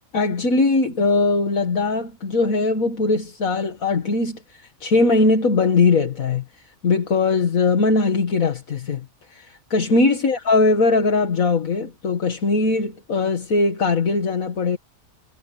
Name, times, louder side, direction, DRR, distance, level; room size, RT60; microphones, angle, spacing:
voice 1, 0.1-6.5 6.8-14.8, left 3 dB, 70° left, 2.2 m, -20 dB
omnidirectional pair, 1.5 m